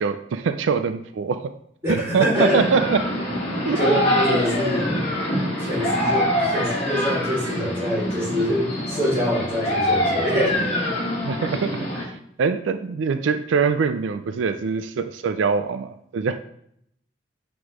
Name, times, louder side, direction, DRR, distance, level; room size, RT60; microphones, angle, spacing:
voice 1, 0.0-1.5 1.9-3.0 3.6-3.8 11.2-11.8 12.4-16.4, right 5 dB, 85° right, 9 dB, 0.4 m, -23 dB
voice 2, 1.8-2.7 3.8-4.9 5.6-10.7, equal, 15° right, -3 dB, 2.1 m, -24 dB
sound 1, 2.3-12.0, left 1 dB, 35° left, 1.8 m, -25 dB
8.0 x 3.0 x 4.8 m, 0.71 s
head